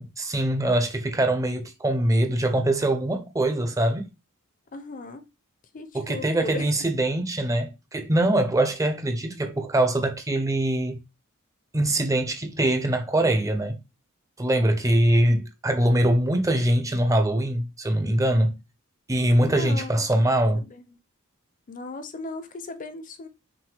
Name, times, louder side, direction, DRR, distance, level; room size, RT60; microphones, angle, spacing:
voice 1, 0.0-4.1 5.9-11.0 11.7-13.8 14.4-18.6 19.1-20.6, right 1 dB, 15° right, 0.5 m, -23 dB
voice 2, 4.7-5.2 5.7-6.7 19.3-20.0 20.5-20.8 21.7-23.3, left 3 dB, 40° left, 0.6 m, -37 dB
6.0 x 2.2 x 3.3 m
head